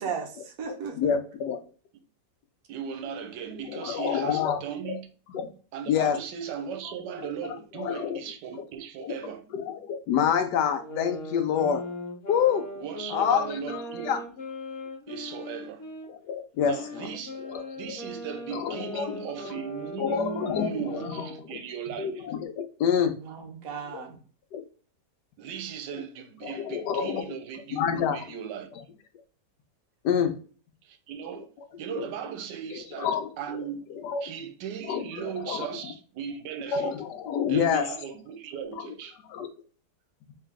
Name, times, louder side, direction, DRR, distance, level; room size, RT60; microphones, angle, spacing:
voice 1, 0.0-1.1 23.2-24.2, right 6 dB, 60° right, 1.1 m, -36 dB
voice 2, 1.0-1.6 3.7-5.0 5.3-5.5 5.9-6.2 7.2-7.3 7.7-8.2 9.0-11.8 12.3-12.7 13.1-14.2 16.1-17.1 17.4-17.6 18.5-19.2 19.4-19.5 20.0-21.6 22.0-23.2 23.9-24.0 24.5-24.6 26.4-27.2 27.7-28.2 30.0-30.4 31.9-32.0 32.7-33.6 33.9-34.2 34.8-35.7 36.7-37.8 39.3-39.5, left 8 dB, 85° left, 1.2 m, -28 dB
voice 3, 2.7-5.1 5.7-9.5 12.7-14.2 15.1-15.8 16.6-17.4 17.8-22.3 25.4-28.7 30.8-31.5 31.8-33.9 34.2-36.9 37.5-39.2, right 8 dB, 90° right, 1.3 m, -37 dB
sound 1, 10.7-16.1 16.6-21.5, left 1 dB, 60° left, 1.2 m, -39 dB
3.4 x 3.0 x 3.5 m
omnidirectional pair, 1.8 m